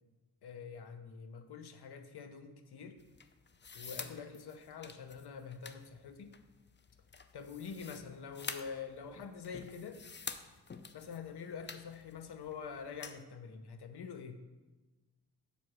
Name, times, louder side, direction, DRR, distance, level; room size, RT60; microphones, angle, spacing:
voice 1, 0.4-3.0 3.7-6.3 7.3-10.0 10.9-14.4, left 6 dB, 75° left, 8 dB, 0.9 m, -46 dB
sound 1, 3.0-13.2, left 5 dB, 30° left, 0.6 m, -49 dB
7.0 x 4.7 x 6.2 m, 1.2 s
cardioid pair, 50°, 39 cm